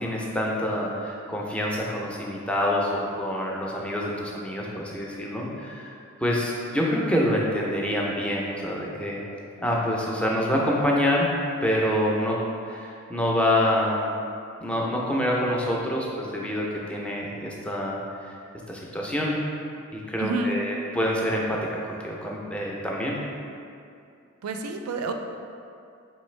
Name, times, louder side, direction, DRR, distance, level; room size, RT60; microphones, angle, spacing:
voice 1, 0.0-5.9 6.2-9.2 9.6-11.3 11.6-12.4 12.6-14.0 14.6-18.0 18.2-18.4 18.7-19.4 19.9-23.2, left 1 dB, 5° left, -3 dB, 0.4 m, -26 dB
voice 2, 20.2-20.6 24.4-25.1, right 2 dB, 80° right, 5 dB, 0.4 m, -28 dB
4.4 x 3.2 x 3.1 m, 2.5 s
head